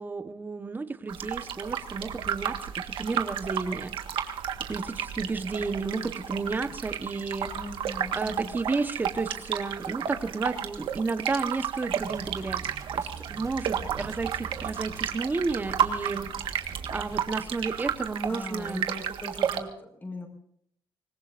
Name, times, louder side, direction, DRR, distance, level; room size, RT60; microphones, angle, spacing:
voice 1, 0.0-4.2 4.7-7.6 8.1-12.6 12.9-16.3 16.9-18.9, right 3 dB, 20° right, 10 dB, 1.2 m, -32 dB
sound 1, 1.1-19.6, right 9 dB, 85° right, 1.6 m, -32 dB
voice 2, 7.5-8.6 18.3-20.3, left 1 dB, 25° left, 3 dB, 5.6 m, -40 dB
sound 2, 12.0-17.2, right 5 dB, 45° right, 4.8 m, -45 dB
25.5 x 20.5 x 2.6 m, 0.68 s
cardioid pair, 130°, 9 cm